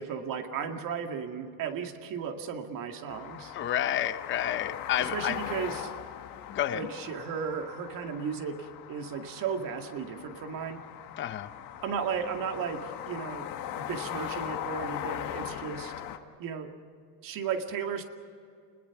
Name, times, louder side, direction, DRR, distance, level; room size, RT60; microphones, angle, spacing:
voice 1, 0.0-3.5 5.0-5.9 6.7-10.8 11.8-15.9 16.4-16.7 17.2-18.0, right 6 dB, 45° right, 5 dB, 2.2 m, -35 dB
sound 1, 3.1-16.2, left 11 dB, 45° left, 1.6 m, -40 dB
voice 2, 3.5-5.4 6.5-6.9 11.2-11.5, left 11 dB, 25° left, 11 dB, 0.8 m, -30 dB
29.5 x 20.5 x 6.0 m, 2.4 s
supercardioid pair, 135°, 48 cm